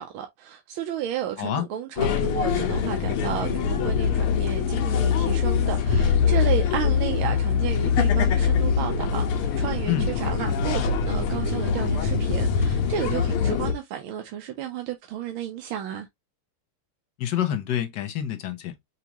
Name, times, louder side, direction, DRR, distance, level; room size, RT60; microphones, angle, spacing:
voice 1, 0.0-16.1, right 10 dB, 75° right, 1.5 m, -32 dB
sound 1, 2.0-13.7, left 6 dB, 85° left, 1.8 m, -23 dB
voice 2, 17.2-18.7, left 11 dB, 60° left, 1.4 m, -27 dB
6.0 x 2.8 x 2.9 m
omnidirectional pair, 2.4 m